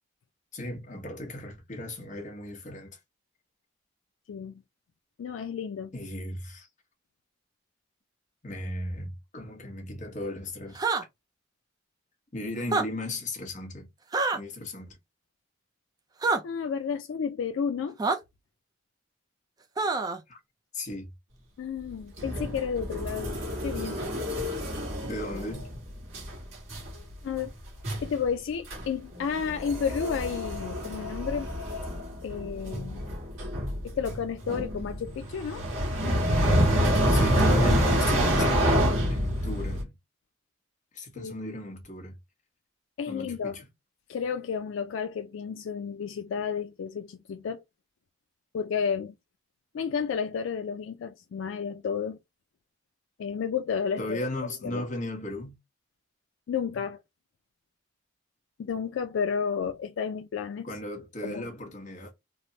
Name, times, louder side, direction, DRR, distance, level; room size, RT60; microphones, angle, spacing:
voice 1, 0.5-3.0 5.9-6.7 8.4-10.8 12.3-13.9 14.3-15.0 20.3-20.4 20.7-21.1 25.0-25.9 37.1-39.9 40.9-42.2 43.1-43.7 54.0-55.5 60.6-62.1, left 1 dB, 40° left, 1.0 m, -36 dB
voice 2, 4.3-4.6 5.2-5.9 16.4-18.0 21.6-23.4 23.6-24.0 26.9-27.5 28.0-31.5 32.2-33.0 33.8-35.6 41.2-41.3 43.0-43.6 44.1-47.6 48.5-49.1 49.7-52.2 53.2-54.2 54.6-54.9 56.5-57.0 58.6-60.7 61.2-61.4, left 6 dB, 70° left, 0.3 m, -32 dB
sound 1, 10.7-11.0 12.6-12.9 14.1-14.4 16.2-16.4 18.0-18.2 19.8-20.2, right 3 dB, 20° right, 0.4 m, -26 dB
sound 2, 22.2-25.8 26.1-26.4 26.7-27.0 27.4-27.5 27.8-28.1 28.7-28.8 29.1-39.8, equal, 75° right, 1.3 m, -27 dB
3.2 x 2.0 x 2.6 m
head